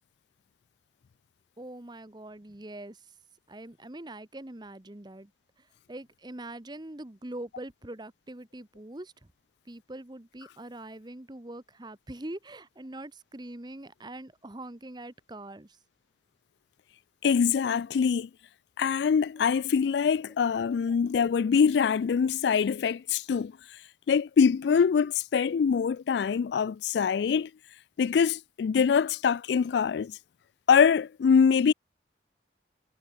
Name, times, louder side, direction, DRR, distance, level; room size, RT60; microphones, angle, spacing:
voice 1, 1.6-3.0 3.5-5.3 5.6-9.1 9.7-15.8 20.9-21.0, right 1 dB, 25° right, 1.1 m, -43 dB
voice 2, 17.2-18.3 18.8-23.5 24.1-27.5 28.0-30.2 30.7-31.7, left 6 dB, 75° left, 0.3 m, -24 dB
head